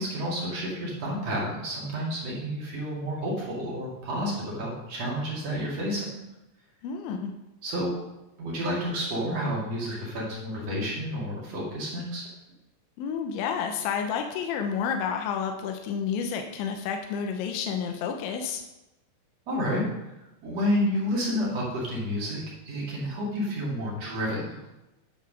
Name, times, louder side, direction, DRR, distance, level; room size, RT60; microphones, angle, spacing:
voice 1, 0.0-6.2 7.6-7.9 8.4-12.2 19.5-19.8 20.4-24.7, equal, 45° right, -4 dB, 2.6 m, -30 dB
voice 2, 6.8-7.3 13.0-18.6, left 7 dB, 85° left, 4 dB, 3.1 m, -30 dB
10.0 x 4.8 x 6.1 m, 0.95 s
omnidirectional pair, 5.2 m